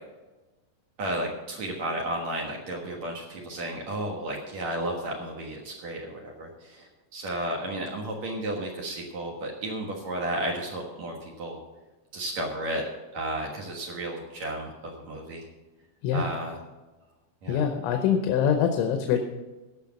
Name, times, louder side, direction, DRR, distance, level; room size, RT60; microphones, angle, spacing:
voice 1, 1.0-11.6 12.1-12.8 13.1-15.5 16.1-16.6 17.4-17.6, right 1 dB, 65° right, 0 dB, 1.8 m, -33 dB
voice 2, 17.5-19.2, left 8 dB, 85° left, 5 dB, 3.3 m, -24 dB
16.0 x 5.9 x 7.1 m, 1.1 s
omnidirectional pair, 5.3 m